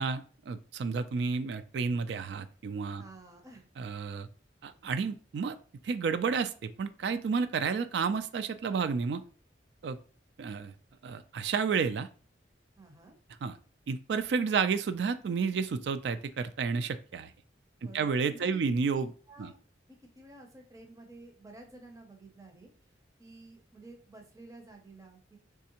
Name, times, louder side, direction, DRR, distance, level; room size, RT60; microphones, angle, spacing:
voice 1, 0.0-3.0 3.8-4.3 4.6-5.6 5.8-9.2 9.8-10.0 10.4-10.7 11.0-12.1 13.4-13.6 13.9-17.3 17.9-19.1 19.4-19.5, right 5 dB, 65° right, 11 dB, 0.3 m, -31 dB
voice 2, 2.9-3.7 12.8-13.2 17.8-18.6 18.9-19.0 19.3-19.6 19.9-22.7 23.2-25.4, right 2 dB, 20° right, 3 dB, 0.6 m, -52 dB
3.5 x 3.3 x 2.9 m, 0.40 s
head